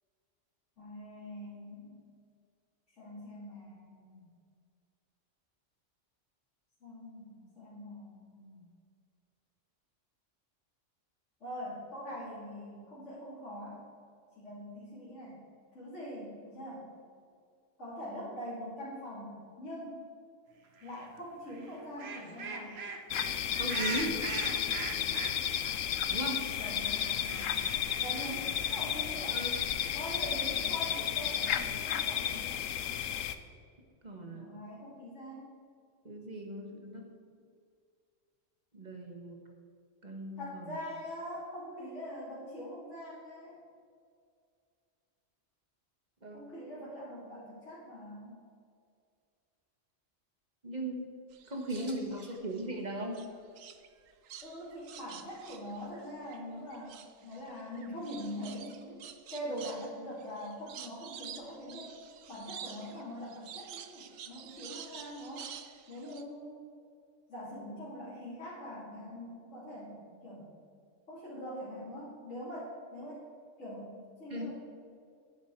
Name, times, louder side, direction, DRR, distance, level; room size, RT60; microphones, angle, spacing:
voice 1, 0.8-2.0 3.0-4.2 6.8-8.6 11.4-13.8 14.4-15.4 15.7-16.9 17.8-20.0 20.8-22.8 26.3-27.6 28.0-29.4 29.9-32.6 34.3-35.5 40.4-43.6 46.3-48.3 54.4-59.0 59.3-62.0 62.3-65.5 65.9-66.7 67.3-70.5 71.1-73.2 73.6-74.5, equal, 65° left, -9 dB, 3.1 m, -43 dB
sound 1, 20.8-21.1 21.5-25.8 26.0-26.1 26.3-29.1, right 4 dB, 55° right, 1.3 m, -41 dB
sound 2, 23.1-33.4, left 9 dB, 85° left, 1.0 m, -33 dB
voice 2, 23.6-24.2 26.1-26.5 29.3-29.6 34.0-34.5 36.0-37.1 38.7-39.4 40.0-40.7 46.2-46.5 50.6-51.0 51.5-53.2 74.3-74.5, right 1 dB, 35° right, 1 dB, 1.7 m, -38 dB
sound 3, 51.3-52.7 53.1-56.4 56.7-66.2, right 9 dB, 90° right, 1.1 m, -49 dB
11.0 x 10.0 x 4.7 m, 2.2 s
omnidirectional pair, 1.3 m